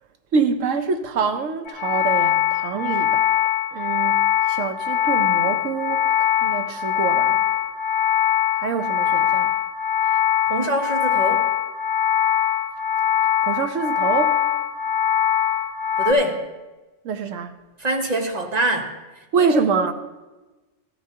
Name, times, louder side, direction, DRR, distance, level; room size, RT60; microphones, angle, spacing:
voice 1, 0.3-7.4 8.5-9.5 13.4-14.4 17.0-17.5 19.3-19.9, right 5 dB, 85° right, 1.1 m, -25 dB
sound 1, 1.7-16.1, left 10 dB, 70° left, 2.2 m, -21 dB
voice 2, 2.7-3.1 10.1-10.2 10.5-11.5 16.0-16.5 17.8-19.9, right 1 dB, 35° right, 1.0 m, -25 dB
14.0 x 14.0 x 2.8 m
omnidirectional pair, 1.3 m